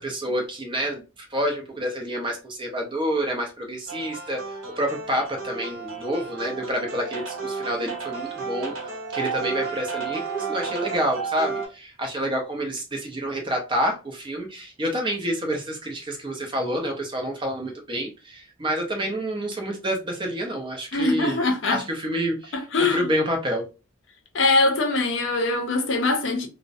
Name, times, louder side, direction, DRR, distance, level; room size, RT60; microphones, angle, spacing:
voice 1, 0.0-21.4 21.7-23.7, equal, 25° right, 0.5 m, -28 dB
sound 1, 3.9-11.7, right 5 dB, 85° right, 0.7 m, -32 dB
voice 2, 20.9-21.8 22.5-23.1 24.3-26.5, left 3 dB, 65° left, 0.5 m, -22 dB
2.4 x 2.0 x 2.5 m
head